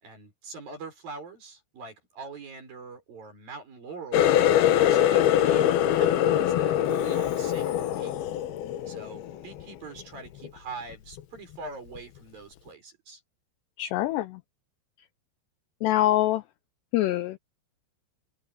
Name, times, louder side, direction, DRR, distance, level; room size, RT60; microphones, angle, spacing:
voice 1, 0.0-4.3 4.7-8.4 8.9-13.2, right 4 dB, 45° right, 7.8 m, -43 dB
Water tap faucet, 4.1-9.6 10.0-10.5 10.9-11.2 12.0-12.1, left 11 dB, 70° left, 2.4 m, -23 dB
voice 2, 13.8-14.4 15.8-16.4 16.9-17.4, left 14 dB, 85° left, 2.4 m, -24 dB
omnidirectional pair, 5.8 m